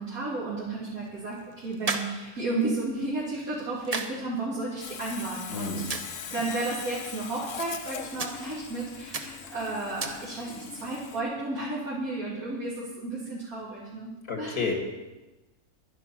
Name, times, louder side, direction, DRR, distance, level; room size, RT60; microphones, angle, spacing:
voice 1, 0.0-5.8 6.3-14.1 14.4-14.6, right 2 dB, 75° right, -8 dB, 3.1 m, -33 dB
sound 1, 0.6-10.7, right 4 dB, 30° right, 0.8 m, -40 dB
Sawing, 4.8-11.2, left 7 dB, 65° left, 1.2 m, -41 dB
voice 2, 5.5-5.9 14.3-14.7, left 4 dB, 90° left, 2 dB, 2.2 m, -30 dB
11.0 x 10.5 x 5.8 m, 1.1 s
omnidirectional pair, 1.6 m